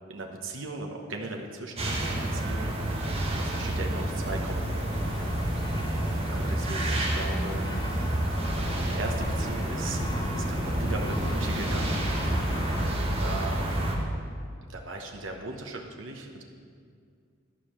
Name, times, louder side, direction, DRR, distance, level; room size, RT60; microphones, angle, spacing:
voice 1, 0.0-3.1 3.4-4.9 6.3-8.2 8.5-12.0 13.0-13.6 14.7-16.4, right 2 dB, 70° right, 1 dB, 1.0 m, -38 dB
sound 1, 1.8-14.0, right 1 dB, 30° right, 1.4 m, -29 dB
sound 2, 4.9-12.9, left 1 dB, 20° left, 0.6 m, -38 dB
12.0 x 4.9 x 7.3 m, 2.2 s
head